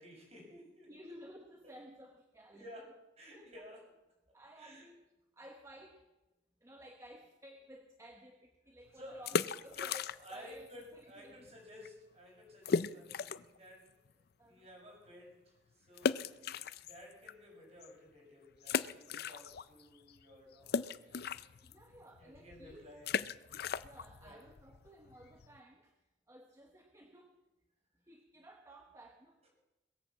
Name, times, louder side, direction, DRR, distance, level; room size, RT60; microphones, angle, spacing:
voice 1, 0.0-0.9 1.6-1.7 2.5-3.9 4.6-4.9 8.9-9.2 9.7-13.9 14.5-16.3 16.9-21.5 22.2-23.1 24.2-24.4, equal, 35° right, -1 dB, 6.5 m, -54 dB
voice 2, 0.9-2.6 3.4-3.5 4.3-5.1 5.3-6.0 6.6-9.8 10.3-10.7 10.9-11.5 14.4-14.7 16.6-16.7 21.6-22.9 23.8-25.9 26.3-27.4 28.1-29.4, right 1 dB, 15° right, 3 dB, 1.2 m, -55 dB
sound 1, 9.1-10.5 10.7-10.8 11.4-11.6 11.8-11.9 12.6-13.6 14.0-14.1 16.0-17.3 17.8-17.9 18.6-19.8 20.1-25.6, left 6 dB, 55° left, 0.5 m, -37 dB
21.5 x 8.8 x 7.2 m, 1.0 s
head